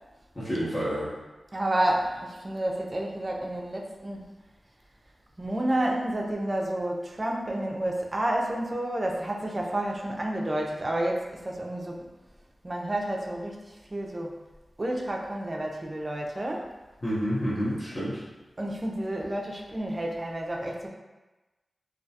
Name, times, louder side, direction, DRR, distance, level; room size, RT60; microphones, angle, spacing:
voice 1, 0.4-1.1 17.0-18.2, equal, 25° left, -10 dB, 0.7 m, -29 dB
voice 2, 1.5-4.3 5.4-12.1 12.6-14.4 14.8-16.7 18.6-20.9, right 1 dB, 30° right, 0 dB, 0.4 m, -30 dB
2.3 x 2.2 x 2.6 m, 1.1 s
wide cardioid pair, 85°, 0 cm